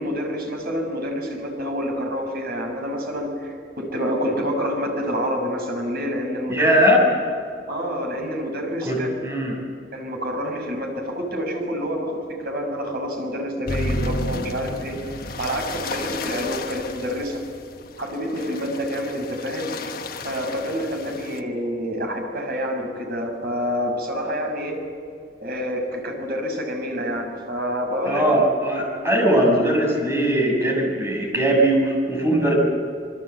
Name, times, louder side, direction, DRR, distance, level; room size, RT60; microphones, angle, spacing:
voice 1, 0.0-6.8 7.7-9.1 9.9-15.0 15.4-17.4 18.0-20.0 20.2-24.8 25.4-28.3, equal, 60° right, 2 dB, 5.9 m, -27 dB
voice 2, 6.5-7.0 8.8-9.0 9.2-9.6 28.0-32.6, right 1 dB, 15° right, 0 dB, 6.6 m, -20 dB
sound 1, 13.7-21.4, left 2 dB, 55° left, 1.3 m, -32 dB
26.5 x 23.5 x 8.2 m, 2.3 s
head